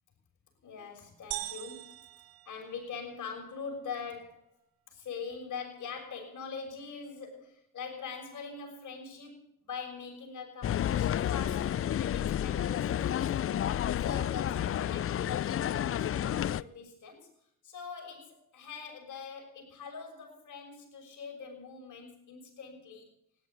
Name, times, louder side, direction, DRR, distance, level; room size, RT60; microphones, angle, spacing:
voice 1, 0.6-1.9 2.4-4.5 4.9-17.3 17.6-23.1, left 5 dB, 55° left, 2 dB, 6.2 m, -43 dB
sound 1, 1.3-3.3, right 18 dB, 80° right, 0.8 m, -42 dB
sound 2, 10.6-16.6, left 10 dB, 40° left, 0.5 m, -30 dB
16.0 x 10.5 x 8.2 m, 0.77 s
hypercardioid pair, 50°, 36 cm